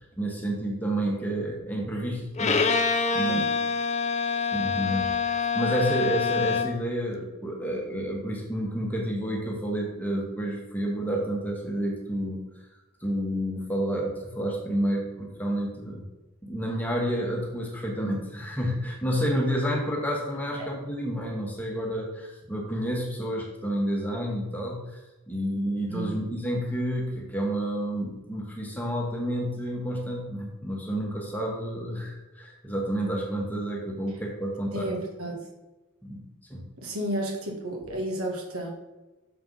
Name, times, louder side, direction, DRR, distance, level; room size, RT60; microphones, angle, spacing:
voice 1, 0.2-3.4 4.5-12.4 13.0-16.0 16.4-25.0 25.3-34.9 36.0-36.2 36.5-36.6, right 1 dB, 10° left, -1 dB, 1.3 m, -30 dB
Bowed string instrument, 2.4-6.9, left 5 dB, 30° left, 0.5 m, -26 dB
voice 2, 25.9-26.2 34.7-35.5 36.8-38.7, right 1 dB, 85° right, 1 dB, 1.6 m, -32 dB
6.7 x 4.4 x 5.4 m, 1.1 s
head